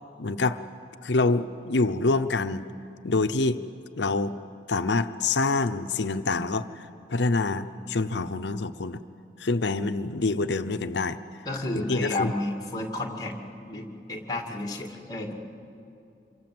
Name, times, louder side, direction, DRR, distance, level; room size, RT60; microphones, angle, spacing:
voice 1, 0.2-0.6 1.0-2.6 3.0-3.6 4.0-4.3 4.7-9.0 9.4-11.2 11.9-12.3, left 3 dB, 75° left, 10 dB, 0.8 m, -26 dB
voice 2, 11.5-13.3 13.7-15.3, left 2 dB, 20° left, 3 dB, 2.4 m, -31 dB
27.0 x 24.0 x 7.8 m, 2.8 s
head